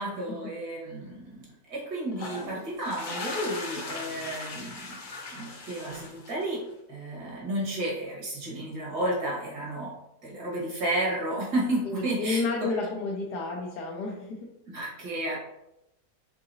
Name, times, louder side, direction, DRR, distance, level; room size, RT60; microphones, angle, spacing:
voice 1, 0.0-5.0 5.3-6.6 6.9-9.9 10.2-12.7 14.7-15.4, right 1 dB, 80° right, -4 dB, 2.1 m, -32 dB
sound 1, 2.1-6.7, left 3 dB, 55° left, 0.5 m, -38 dB
voice 2, 11.8-14.5, left 3 dB, 85° left, -1 dB, 1.2 m, -31 dB
4.7 x 3.7 x 2.6 m, 0.88 s
omnidirectional pair, 1.7 m